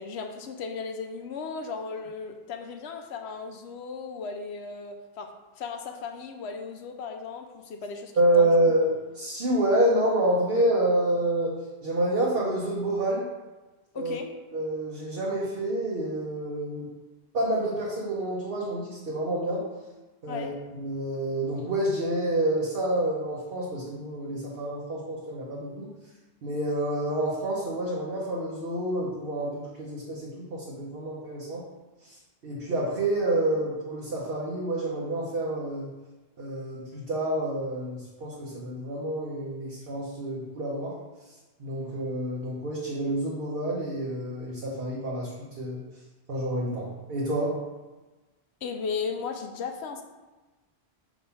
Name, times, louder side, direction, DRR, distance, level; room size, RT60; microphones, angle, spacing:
voice 1, 0.0-5.3 5.6-8.5 13.9-14.3 20.3-20.5 48.6-50.0, left 5 dB, 85° left, 5 dB, 0.9 m, -36 dB
voice 2, 8.2-11.6 11.8-13.3 13.9-14.2 14.5-16.9 17.3-19.7 20.2-25.9 26.4-31.6 32.0-32.2 32.4-35.9 36.4-41.0 41.6-45.8 46.3-47.6, right 1 dB, 65° right, -5 dB, 1.1 m, -28 dB
5.9 x 3.1 x 5.4 m, 1.2 s
omnidirectional pair, 1.1 m